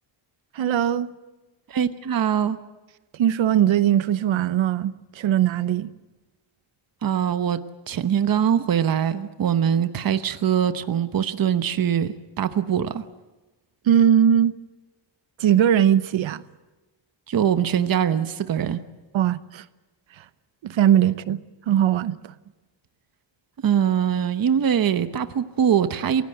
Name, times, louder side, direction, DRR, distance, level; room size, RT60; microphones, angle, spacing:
voice 1, 0.5-1.1 3.1-5.9 13.9-14.5 15.4-16.4 19.1-19.6 20.6-21.4 21.7-22.3, right 10 dB, 80° right, 1.0 m, -20 dB
voice 2, 1.7-2.6 7.0-13.0 17.3-18.8 23.6-26.2, right 8 dB, 50° right, 1.0 m, -22 dB
27.5 x 17.0 x 7.9 m
wide cardioid pair, 125°, 46 cm